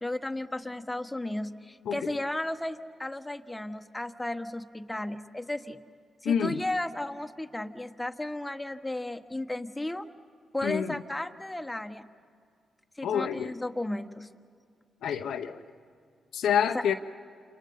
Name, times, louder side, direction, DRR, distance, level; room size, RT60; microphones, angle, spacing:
voice 1, 0.0-5.8 6.2-10.1 10.5-12.1 13.0-14.3 16.7-16.8, left 1 dB, 15° left, 6 dB, 1.4 m, -34 dB
voice 2, 6.2-6.6 10.6-10.9 13.0-13.5 15.0-15.6 16.3-16.9, left 8 dB, 75° left, 6 dB, 0.9 m, -27 dB
28.5 x 28.5 x 5.6 m, 2.2 s
hypercardioid pair, 45°, 0 cm